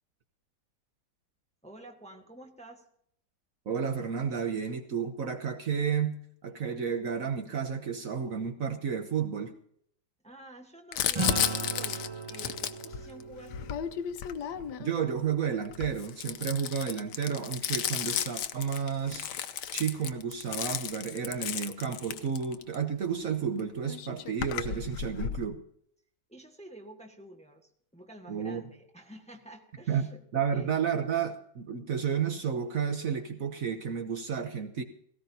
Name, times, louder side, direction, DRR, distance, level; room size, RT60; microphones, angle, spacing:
voice 1, 1.6-2.8 10.2-13.5 26.3-30.2 30.5-30.7, right 1 dB, 5° left, 3 dB, 1.3 m, -50 dB
voice 2, 3.7-9.5 14.8-19.3 19.7-25.6 28.3-28.6 29.9-34.8, right 7 dB, 55° right, 6 dB, 1.3 m, -31 dB
Crumpling crinkling, 10.9-15.0 15.7-22.8 23.6-23.7 23.9-25.5, left 9 dB, 80° left, 1.3 m, -34 dB
sound 1, 11.1-15.8, right 3 dB, 35° right, 0.4 m, -38 dB
18.0 x 17.0 x 2.8 m, 0.67 s
omnidirectional pair, 1.8 m